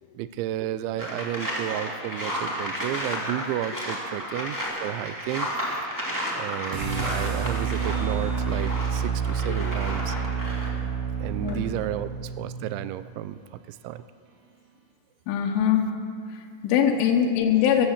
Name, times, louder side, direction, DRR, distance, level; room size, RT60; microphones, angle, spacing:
voice 1, 0.1-5.5 6.3-10.2 11.2-12.1 12.4-13.4 13.7-14.0, right 13 dB, 85° right, 13 dB, 2.8 m, -32 dB
sound 1, 1.0-10.9 11.3-11.5, equal, 10° right, 1.0 m, -32 dB
sound 2, 6.7-12.9, right 6 dB, 65° right, 3.4 m, -29 dB
voice 2, 15.3-16.0 16.3-17.9, left 8 dB, 85° left, 2 dB, 3.6 m, -22 dB
15.0 x 12.5 x 7.2 m, 2.2 s
omnidirectional pair, 5.4 m